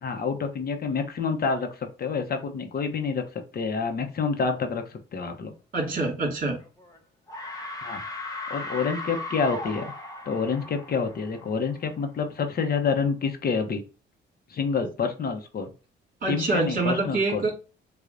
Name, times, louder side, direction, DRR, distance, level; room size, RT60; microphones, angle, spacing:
voice 1, 0.0-3.2 3.5-5.5 7.8-8.0 8.5-9.9 10.3-13.8 14.5-15.7 16.3-17.4, left 5 dB, 50° left, 6 dB, 0.8 m, -28 dB
voice 2, 5.7-6.6 16.2-17.6, right 3 dB, 45° right, -1 dB, 2.4 m, -26 dB
sound 1, 6.6-7.0 7.3-11.9, left 2 dB, 20° left, 0.9 m, -37 dB
6.6 x 2.3 x 2.6 m, 0.34 s
cardioid pair, 90°, 20 cm